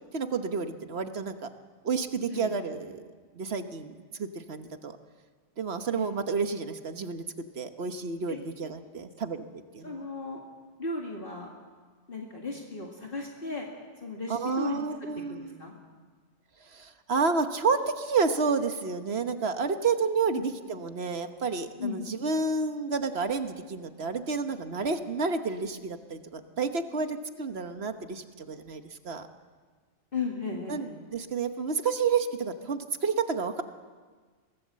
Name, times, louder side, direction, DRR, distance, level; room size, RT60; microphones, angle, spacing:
voice 1, 0.1-1.4 1.8-3.0 3.3-3.9 4.2-5.0 5.6-9.4 9.7-10.1 14.3-15.6 16.7-29.3 30.7-33.6, right 4 dB, 60° right, 8 dB, 1.4 m, -30 dB
voice 2, 9.8-10.4 10.8-11.5 12.1-13.7 14.0-14.8 15.3-15.7 21.8-22.0 30.1-30.9, left 3 dB, 50° left, 0 dB, 2.3 m, -35 dB
23.0 x 18.0 x 7.5 m, 1.5 s
omnidirectional pair, 1.2 m